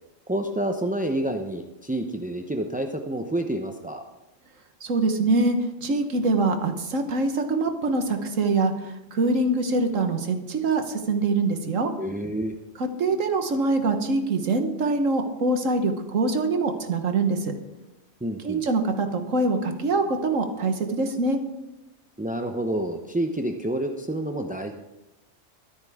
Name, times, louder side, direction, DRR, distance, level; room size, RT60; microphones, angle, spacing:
voice 1, 0.3-4.0 12.0-12.5 18.2-18.7 22.2-24.7, right 1 dB, 10° right, 4 dB, 0.5 m, -28 dB
voice 2, 4.8-11.9 12.8-17.5 18.4-21.4, right 3 dB, 85° right, 6 dB, 1.7 m, -24 dB
22.5 x 9.7 x 3.6 m, 0.98 s
omnidirectional pair, 1.3 m